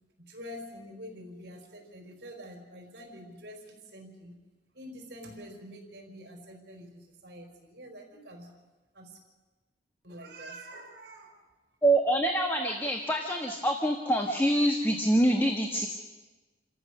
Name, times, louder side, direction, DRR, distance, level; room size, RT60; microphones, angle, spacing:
voice 1, 0.2-4.4 4.7-8.5 8.9-9.2 10.0-11.4, equal, 65° right, 1 dB, 4.8 m, -46 dB
voice 2, 11.8-15.9, right 1 dB, 10° left, 3 dB, 1.3 m, -25 dB
28.5 x 14.0 x 6.5 m, 1.2 s
head